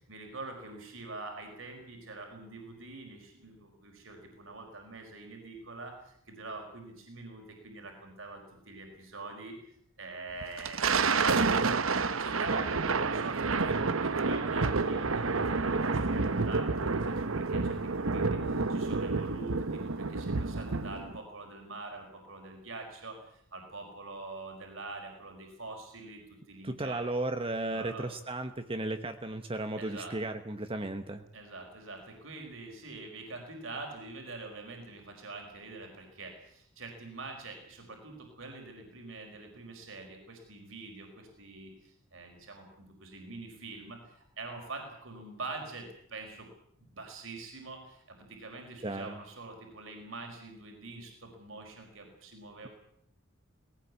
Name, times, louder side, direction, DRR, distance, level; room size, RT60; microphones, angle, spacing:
voice 1, 0.0-9.6 10.0-11.5 11.8-27.0 27.7-28.1 29.8-30.1 31.3-46.5 46.8-52.7, right 3 dB, 70° right, 2 dB, 4.9 m, -45 dB
Thunder, 10.4-21.2, right 4 dB, 85° right, 1.1 m, -29 dB
voice 2, 26.6-31.2 48.8-49.2, right 2 dB, 25° right, 7 dB, 1.1 m, -35 dB
19.0 x 17.5 x 8.3 m, 0.68 s
head